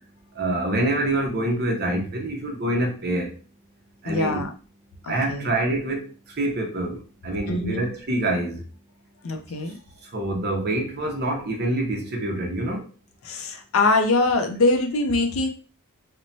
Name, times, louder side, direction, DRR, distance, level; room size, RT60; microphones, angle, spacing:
voice 1, 0.4-3.3 4.0-4.4 5.1-6.0 6.4-7.0 7.2-8.6 10.1-12.8, right 1 dB, 45° right, 0.7 m, -25 dB
voice 2, 4.1-4.5 5.0-5.5 7.5-7.9 9.2-9.8 13.2-15.5, left 2 dB, 65° left, 0.5 m, -23 dB
3.0 x 2.1 x 2.6 m
head